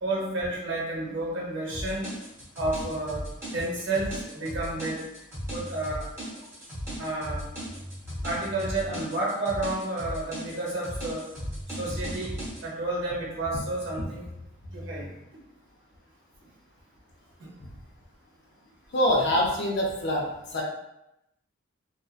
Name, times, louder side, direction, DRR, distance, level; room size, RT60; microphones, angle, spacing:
voice 1, 0.0-2.1 2.5-3.3 3.5-5.0 5.5-6.1 7.0-7.5 8.2-11.2 11.7-14.3 14.7-15.2 17.4-17.5, right 2 dB, 60° right, -4 dB, 0.8 m, -31 dB
sound 1, 1.7-12.6, equal, 10° right, 0.7 m, -37 dB
sound 2, 5.3-5.9 6.9-7.0 7.3-9.0 11.1-11.2 11.5-12.7 13.4-15.1, left 1 dB, 85° left, 1.1 m, -42 dB
voice 2, 18.9-20.6, left 1 dB, 55° left, -2 dB, 0.5 m, -25 dB
2.5 x 2.2 x 2.3 m, 0.87 s
head